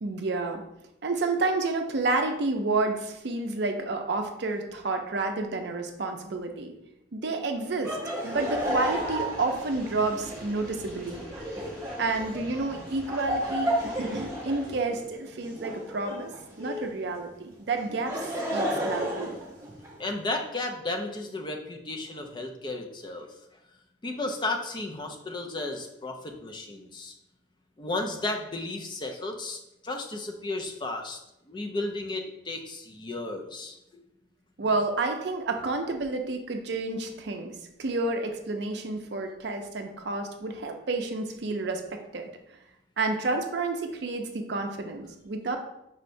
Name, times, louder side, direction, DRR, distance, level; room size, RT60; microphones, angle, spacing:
voice 1, 0.0-0.6 1.0-6.7 7.1-8.0 8.2-11.2 12.0-16.3 16.6-18.2 18.5-19.4 34.6-42.3 43.0-45.6, right 3 dB, 55° right, 4 dB, 0.5 m, -30 dB
Laughter, 7.8-16.9 17.8-20.1, equal, 15° right, 0.7 m, -33 dB
sound 1, 8.3-14.7, right 1 dB, 5° left, 1.0 m, -46 dB
voice 2, 20.0-23.3 24.0-27.1 27.8-29.6 29.8-31.2 31.5-34.0, left 2 dB, 25° left, 3 dB, 0.4 m, -33 dB
5.5 x 3.2 x 2.6 m, 0.85 s
head